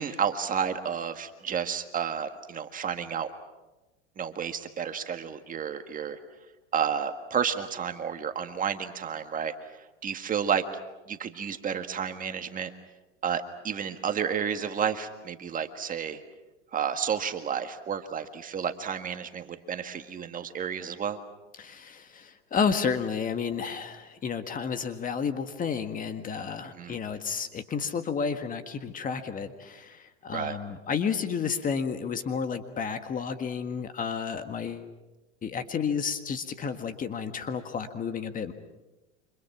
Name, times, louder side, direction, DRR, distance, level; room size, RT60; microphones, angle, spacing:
voice 1, 0.0-3.3 4.2-6.2 6.7-9.6 10.0-10.6 11.1-12.7 13.2-16.2 16.7-21.2 26.7-27.0 30.3-30.6, right 7 dB, 25° right, 8 dB, 1.7 m, -31 dB
voice 2, 21.6-34.9 35.4-38.5, left 6 dB, 25° left, 8 dB, 1.7 m, -31 dB
29.5 x 26.5 x 6.1 m, 1.0 s
hypercardioid pair, 115°, 35 cm